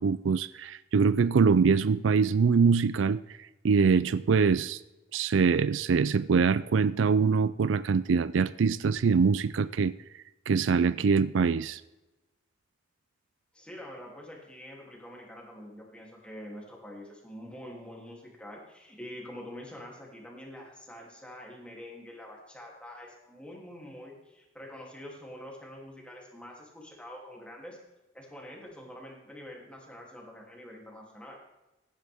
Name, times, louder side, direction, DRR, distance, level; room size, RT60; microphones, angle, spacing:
voice 1, 0.0-3.2 3.6-4.8 5.1-9.9 10.5-11.8, right 5 dB, 70° right, 16 dB, 0.4 m, -24 dB
voice 2, 13.5-27.8 28.1-31.4, left 1 dB, 5° left, -1 dB, 2.9 m, -46 dB
16.0 x 10.0 x 3.5 m, 1.0 s
head